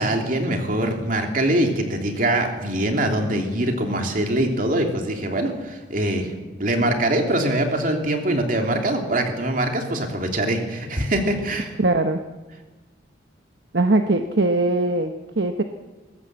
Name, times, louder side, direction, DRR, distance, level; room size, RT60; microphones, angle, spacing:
voice 1, 0.0-6.3 6.6-11.7, right 1 dB, 45° right, 3 dB, 3.0 m, -23 dB
voice 2, 11.8-12.2 13.7-15.6, right 2 dB, 65° right, 6 dB, 1.0 m, -21 dB
21.5 x 18.0 x 7.6 m, 1.2 s
head